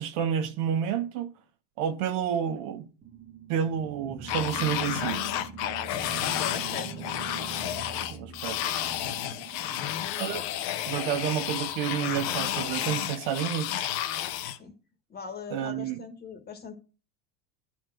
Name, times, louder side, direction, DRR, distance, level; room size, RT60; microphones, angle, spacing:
voice 1, 0.0-1.3 1.8-2.9 3.5-5.2 8.1-8.6 10.2-10.4 10.9-13.7 15.5-16.0, right 9 dB, 60° right, 1.4 m, -29 dB
sound 1, 3.0-10.8, right 6 dB, 15° right, 0.7 m, -43 dB
sound 2, 4.3-14.6, left 12 dB, 80° left, 1.3 m, -31 dB
voice 2, 6.4-7.1 9.7-9.9 14.6-14.7 15.1-16.7, left 5 dB, 20° left, 1.5 m, -41 dB
11.0 x 4.3 x 7.7 m
supercardioid pair, 155°, 48 cm